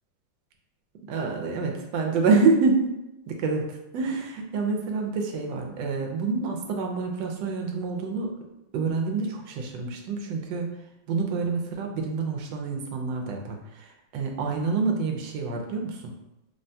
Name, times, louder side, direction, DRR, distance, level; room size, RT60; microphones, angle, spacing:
voice 1, 1.1-3.0 3.3-3.7 3.9-8.3 8.7-10.8 11.1-16.1, right 4 dB, 75° right, 1 dB, 1.2 m, -27 dB
3.5 x 2.2 x 2.6 m, 0.91 s
omnidirectional pair, 2.1 m